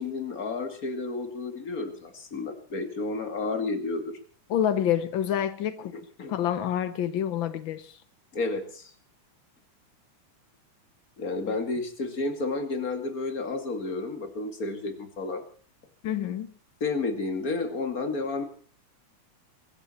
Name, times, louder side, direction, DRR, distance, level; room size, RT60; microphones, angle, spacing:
voice 1, 0.0-4.2 6.2-6.3 8.3-8.9 11.2-15.4 16.8-18.4, left 3 dB, 30° left, 7 dB, 2.4 m, -31 dB
voice 2, 4.5-5.9 6.3-8.0 16.0-16.5, left 10 dB, 85° left, 12 dB, 1.0 m, -27 dB
23.0 x 14.0 x 4.4 m, 0.44 s
omnidirectional pair, 3.6 m